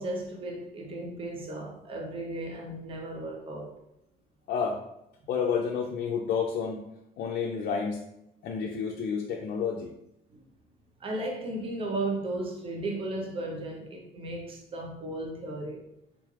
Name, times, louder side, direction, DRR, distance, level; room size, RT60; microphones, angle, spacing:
voice 1, 0.0-3.7 11.0-15.8, right 2 dB, 35° right, 1 dB, 0.7 m, -35 dB
voice 2, 4.5-4.8 5.3-6.8 7.2-8.0 8.4-9.9, left 6 dB, 65° left, 0 dB, 0.4 m, -30 dB
3.6 x 3.1 x 2.4 m, 0.83 s
cardioid pair, 110°, 17 cm